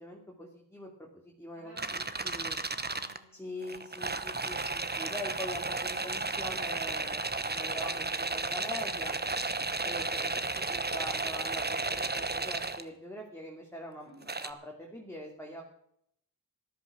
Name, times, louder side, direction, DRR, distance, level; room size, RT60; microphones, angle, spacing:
voice 1, 0.0-2.6 3.3-9.2 9.8-14.1 14.4-15.6, left 1 dB, 5° left, -1 dB, 2.6 m, -43 dB
voice 2, 1.5-4.1 14.0-14.3, right 2 dB, 80° right, -7 dB, 7.5 m, -56 dB
sound 1, 1.8-3.2 3.6-12.8 14.2-14.5, right 3 dB, 25° right, 1.1 m, -33 dB
13.5 x 11.5 x 6.1 m, 0.70 s
wide cardioid pair, 75°, 41 cm